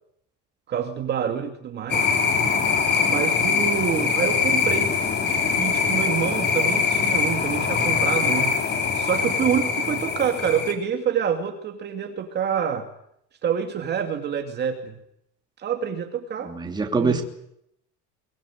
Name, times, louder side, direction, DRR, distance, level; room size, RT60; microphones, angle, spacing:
voice 1, 0.7-2.1 3.0-5.0 5.5-8.6 8.9-12.9 13.4-15.0 15.6-16.5 16.9-17.2, right 8 dB, 30° right, 5 dB, 2.5 m, -27 dB
sound 1, 1.9-10.7, left 5 dB, 30° left, 4.2 m, -23 dB
voice 2, 16.4-17.2, right 4 dB, 15° right, 4 dB, 3.0 m, -24 dB
23.0 x 22.5 x 9.3 m, 0.74 s
cardioid pair, 160°, 33 cm